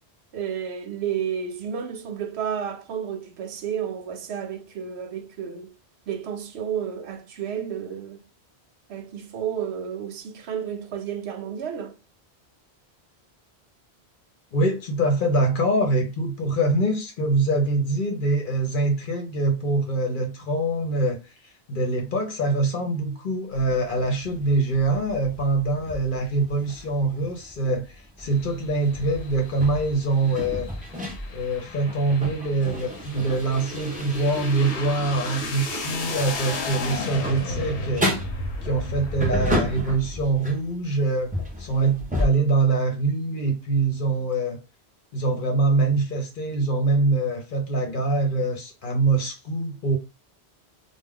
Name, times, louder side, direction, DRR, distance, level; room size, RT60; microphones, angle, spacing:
voice 1, 0.3-5.7 6.1-8.2 8.9-12.0, right 8 dB, 80° right, 0.8 m, -31 dB
voice 2, 14.5-21.2 21.7-30.7 31.3-38.2 38.6-41.3 41.6-44.6 45.1-50.0, right 2 dB, 55° left, 0.8 m, -24 dB
sound 1, 23.5-40.8 41.1-42.3, equal, 10° right, 0.5 m, -33 dB
sound 2, 28.2-39.9, left 2 dB, 85° left, 0.9 m, -34 dB
2.3 x 2.2 x 3.4 m
omnidirectional pair, 1.1 m